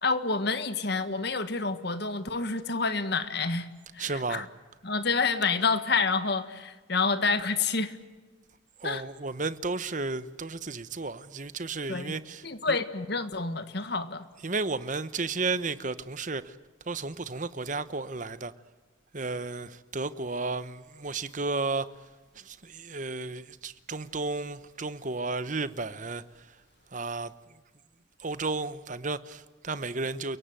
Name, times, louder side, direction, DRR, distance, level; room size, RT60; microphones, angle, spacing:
voice 1, 0.0-3.7 3.9-4.5 4.8-8.0 8.8-9.0 11.9-12.2 12.4-14.2, left 4 dB, 55° left, 1.6 m, -28 dB
voice 2, 4.0-4.5 8.8-12.8 14.4-16.6 16.8-18.5 19.1-22.1 22.3-26.6 26.9-27.3 28.2-30.4, right 3 dB, 40° right, 0.9 m, -33 dB
29.5 x 17.0 x 9.1 m
head